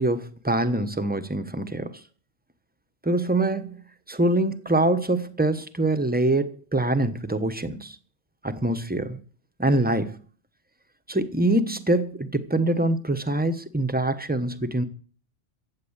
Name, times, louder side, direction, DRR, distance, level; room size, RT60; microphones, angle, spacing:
voice 1, 0.0-2.0 3.0-3.8 4.1-7.9 8.4-9.2 9.6-10.2 11.1-14.8, right 1 dB, 10° right, 1.0 m, -24 dB
15.0 x 8.9 x 7.3 m
omnidirectional pair, 1.2 m